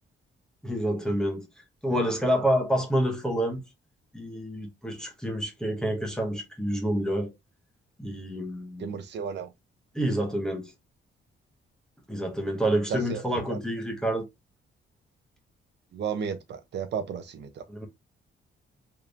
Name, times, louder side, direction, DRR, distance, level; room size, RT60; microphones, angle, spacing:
voice 1, 0.6-1.5 1.8-3.6 4.1-7.3 8.0-8.9 9.9-10.7 12.1-14.3 17.7-17.9, equal, 5° left, 0.8 m, -28 dB
voice 2, 8.8-9.5 12.9-13.2 13.5-13.6 15.9-17.6, right 7 dB, 60° right, 0.6 m, -33 dB
3.5 x 2.9 x 2.4 m
wide cardioid pair, 175°, 21 cm